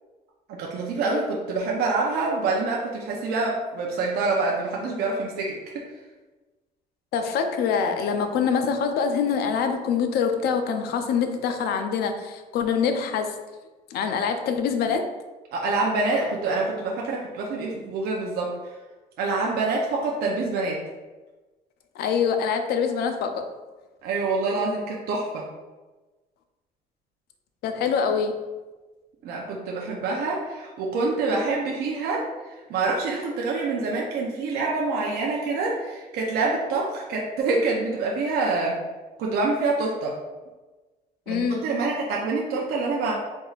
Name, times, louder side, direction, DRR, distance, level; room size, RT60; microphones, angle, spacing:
voice 1, 0.5-5.9 15.5-18.5 19.2-20.8 24.0-25.5 29.2-32.3 32.7-38.8 39.2-40.2 41.3-43.1, right 3 dB, 70° right, -2 dB, 0.6 m, -26 dB
voice 2, 7.1-13.4 13.9-15.1 22.0-23.5 27.6-28.3 41.3-41.6, left 6 dB, 75° left, 6 dB, 0.5 m, -25 dB
4.0 x 3.5 x 2.4 m, 1.2 s
cardioid pair, 140°, 17 cm